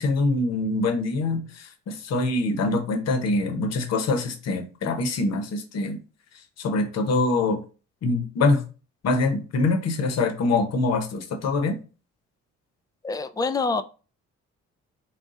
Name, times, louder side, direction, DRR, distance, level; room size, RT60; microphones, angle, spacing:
voice 1, 0.0-6.0 6.3-7.6 8.0-8.6 9.0-11.8, left 3 dB, 60° left, 0.9 m, -24 dB
voice 2, 13.0-13.8, left 3 dB, 15° left, 0.3 m, -26 dB
4.0 x 2.3 x 3.6 m
cardioid pair, 90°, 30 cm